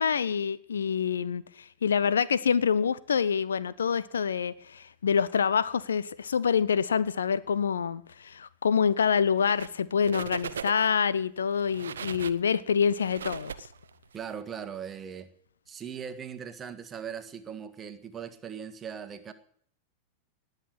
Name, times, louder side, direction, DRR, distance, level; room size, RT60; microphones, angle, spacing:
voice 1, 0.0-13.7, left 7 dB, 70° left, 0.7 m, -26 dB
sound 1, 9.4-9.8 10.0-11.0 11.5-14.2, right 7 dB, 65° right, 0.7 m, -39 dB
voice 2, 14.1-15.3 15.7-19.3, right 7 dB, 25° right, 1.6 m, -39 dB
19.0 x 6.7 x 9.1 m
figure-of-eight pair, 90°, 0 cm